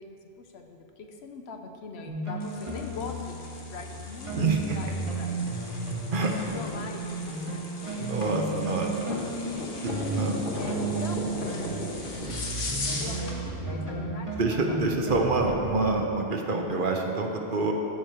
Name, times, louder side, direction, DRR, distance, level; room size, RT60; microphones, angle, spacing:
voice 1, 0.0-5.4 6.2-9.0 9.9-12.6 13.0-14.9, left 4 dB, 75° left, 4 dB, 1.0 m, -43 dB
sound 1, 2.1-6.1 6.5-16.0, right 2 dB, 30° right, 1.6 m, -34 dB
sound 2, 2.4-13.4, left 2 dB, 55° left, 1.2 m, -37 dB
voice 2, 4.3-4.8 6.1-6.3 8.0-9.1 10.2-10.4 14.4-17.7, right 3 dB, 55° right, 2 dB, 1.0 m, -26 dB
14.0 x 4.9 x 4.5 m, 2.8 s
omnidirectional pair, 1.1 m